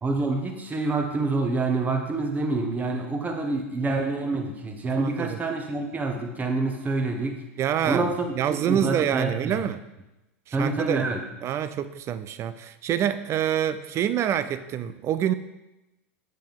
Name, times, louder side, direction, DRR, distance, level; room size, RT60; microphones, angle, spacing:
voice 1, 0.0-7.4 7.8-9.6 10.5-11.2, right 3 dB, 20° right, 4 dB, 1.4 m, -27 dB
voice 2, 5.0-5.4 7.6-9.8 10.5-11.1 11.4-15.3, right 10 dB, 35° right, 13 dB, 0.5 m, -26 dB
7.6 x 7.3 x 3.6 m, 0.96 s
hypercardioid pair, 100°, 8 cm